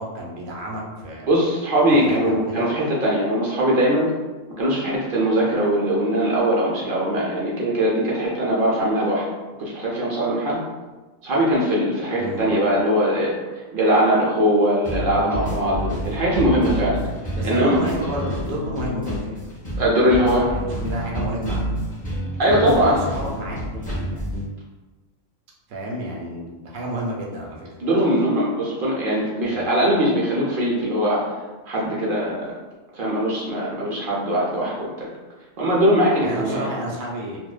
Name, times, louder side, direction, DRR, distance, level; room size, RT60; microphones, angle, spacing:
voice 1, 0.0-1.3 1.9-2.7 12.2-12.6 17.3-19.5 20.5-21.7 22.4-24.3 25.7-27.7 29.4-29.8 36.2-37.4, right 1 dB, 85° right, -2 dB, 1.0 m, -30 dB
voice 2, 1.2-4.1 4.6-9.2 9.6-10.6 11.2-13.4 13.7-17.0 17.4-17.8 19.8-20.5 22.4-22.9 27.8-31.2 31.7-32.4 32.9-35.1 35.6-36.7, equal, 65° right, -5 dB, 0.5 m, -21 dB
sound 1, 14.8-24.4, equal, 15° left, 0.3 m, -29 dB
2.6 x 2.1 x 2.3 m, 1.2 s
omnidirectional pair, 1.4 m